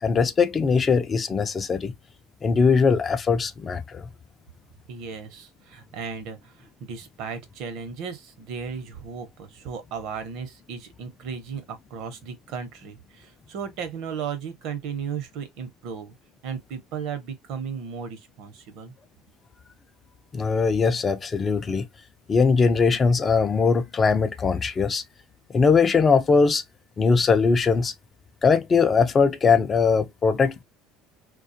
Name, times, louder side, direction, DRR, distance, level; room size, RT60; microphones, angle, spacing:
voice 1, 0.0-1.9 2.4-4.1 20.3-21.9 22.3-25.0 25.5-26.6 27.0-27.9 28.4-30.6, left 5 dB, 30° left, 0.4 m, -21 dB
voice 2, 4.9-16.1 16.4-18.9, right 6 dB, 70° right, 0.8 m, -35 dB
2.4 x 2.3 x 2.6 m
supercardioid pair, 115°, 0 cm